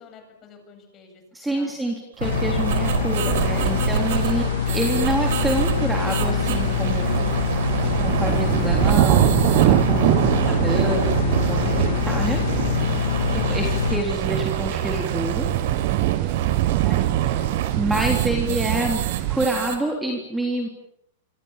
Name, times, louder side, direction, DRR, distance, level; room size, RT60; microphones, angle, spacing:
voice 1, 0.0-1.8 3.7-4.1 9.7-10.1 16.2-16.8, left 5 dB, 25° left, 6 dB, 8.0 m, -46 dB
voice 2, 1.3-4.4 4.7-7.4 8.0-10.0 10.5-12.4 12.9-15.5 16.8-17.4 17.8-19.0 19.3-20.7, right 1 dB, 5° right, 1 dB, 3.6 m, -27 dB
sound 1, 2.2-14.0, left 9 dB, 80° left, 3.0 m, -24 dB
sound 2, 2.2-19.8, right 10 dB, 60° right, 4.5 m, -28 dB
sound 3, 3.4-19.5, right 18 dB, 45° right, 1.0 m, -25 dB
27.5 x 25.5 x 7.4 m, 0.75 s
supercardioid pair, 160°, 0 cm